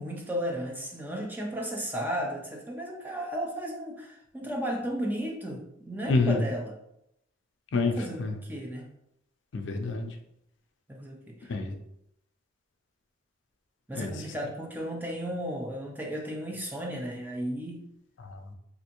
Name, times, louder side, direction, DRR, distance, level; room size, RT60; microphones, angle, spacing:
voice 1, 0.0-6.7 7.9-8.2 8.5-8.9 10.9-11.5 13.9-17.9, equal, 10° right, 0 dB, 0.4 m, -34 dB
voice 2, 6.1-6.5 7.7-8.4 9.5-10.2 11.5-11.8 13.9-14.3 18.2-18.5, left 3 dB, 70° left, 5 dB, 0.4 m, -28 dB
3.4 x 2.6 x 2.9 m, 0.79 s
head